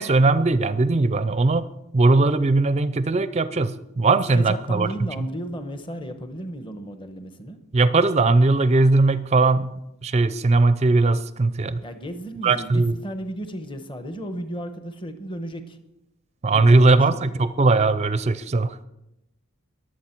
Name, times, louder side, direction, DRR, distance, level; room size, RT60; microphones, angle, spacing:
voice 1, 0.0-1.7 1.9-4.9 7.7-9.7 10.0-11.8 12.4-12.9 16.4-18.8, right 3 dB, 30° right, 14 dB, 0.4 m, -19 dB
voice 2, 4.3-7.6 11.8-15.8 16.5-17.4, right 1 dB, 25° left, 8 dB, 1.0 m, -34 dB
22.0 x 7.8 x 4.5 m, 0.88 s
head